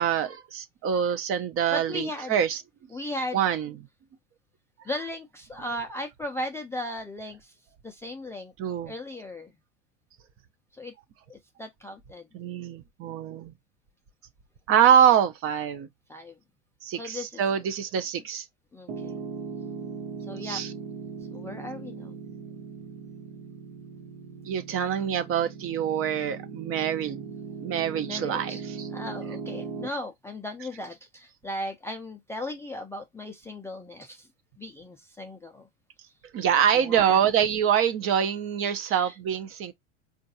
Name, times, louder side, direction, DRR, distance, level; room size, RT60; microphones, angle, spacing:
voice 1, 0.0-2.6 3.3-3.7 8.6-8.9 12.3-13.5 14.7-15.9 16.8-18.5 20.4-20.7 24.5-27.3 27.6-28.6 36.3-39.7, right 9 dB, 35° right, 0.6 m, -25 dB
voice 2, 1.7-2.4 2.9-3.5 4.8-7.6 7.8-8.5 8.9-9.5 10.7-10.9 11.3-12.3 16.1-16.4 16.9-17.4 18.7-19.2 20.2-20.6 21.3-22.2 28.1-28.6 28.9-34.3 34.6-35.7 36.0-36.1 36.7-37.2 38.9-39.2, left 1 dB, 5° left, 0.4 m, -37 dB
Piano, 18.9-29.9, right 5 dB, 80° right, 1.1 m, -39 dB
4.4 x 2.5 x 2.6 m
hypercardioid pair, 100°, 37 cm